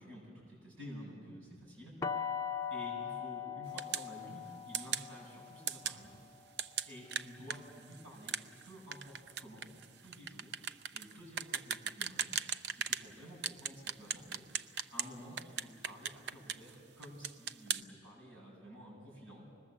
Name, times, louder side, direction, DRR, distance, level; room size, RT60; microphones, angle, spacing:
voice 1, 0.0-2.3 2.7-6.1 6.9-8.4 8.6-9.7 10.0-10.5 10.9-14.5 14.9-19.5, equal, 90° right, -4 dB, 7.7 m, -51 dB
sound 1, 2.0-7.9, left 7 dB, 15° left, 0.7 m, -41 dB
sound 2, 3.8-4.1 4.7-5.1 5.7-6.0 6.6-13.1 13.4-15.1 15.4-16.7 17.0-17.8, right 8 dB, 55° right, 0.5 m, -38 dB
25.5 x 20.5 x 7.5 m, 2.1 s
head